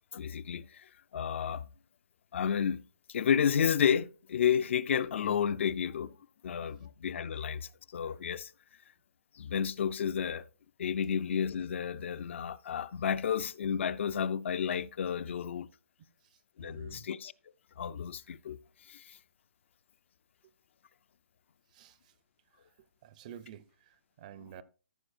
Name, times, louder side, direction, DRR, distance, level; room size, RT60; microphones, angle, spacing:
voice 1, 0.1-1.7 2.3-2.8 3.1-6.2 6.4-8.5 9.3-10.5 10.8-15.7 16.6-17.3 17.8-18.6 18.9-19.2, left 8 dB, 55° left, 0.4 m, -31 dB
voice 2, 16.2-17.1 20.4-20.5 21.7-22.1 22.5-24.6, right 9 dB, 30° right, 0.5 m, -52 dB
14.5 x 6.0 x 2.5 m
hypercardioid pair, 160°, 8 cm